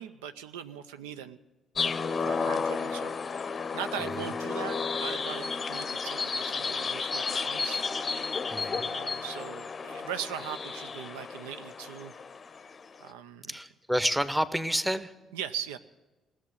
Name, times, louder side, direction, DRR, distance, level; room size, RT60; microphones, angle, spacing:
voice 1, 0.0-1.4 2.2-7.9 8.8-12.1 13.0-13.5 15.3-15.8, right 9 dB, 75° right, 11 dB, 0.4 m, -40 dB
sound 1, 1.8-12.9, left 5 dB, 40° left, 0.6 m, -32 dB
voice 2, 8.5-8.9 13.5-15.1, equal, 5° right, 13 dB, 0.9 m, -29 dB
17.5 x 7.3 x 9.6 m, 1.2 s
figure-of-eight pair, 45°, 0 cm